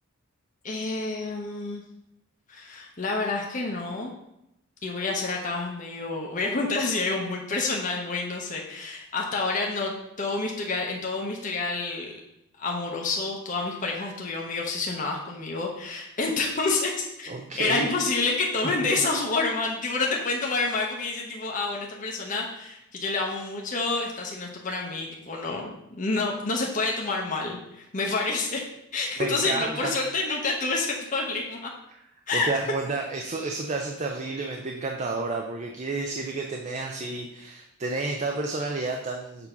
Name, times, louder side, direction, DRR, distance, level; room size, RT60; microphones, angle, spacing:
voice 1, 0.6-1.8 2.5-4.1 4.8-12.2 12.6-17.3 17.6-28.7 28.9-31.7 32.3-32.5, left 3 dB, 35° left, -1 dB, 0.8 m, -28 dB
voice 2, 17.3-17.9 29.2-29.9 31.9-32.0 32.3-39.5, right 3 dB, 35° right, 2 dB, 0.5 m, -31 dB
6.8 x 2.8 x 5.7 m, 0.83 s
head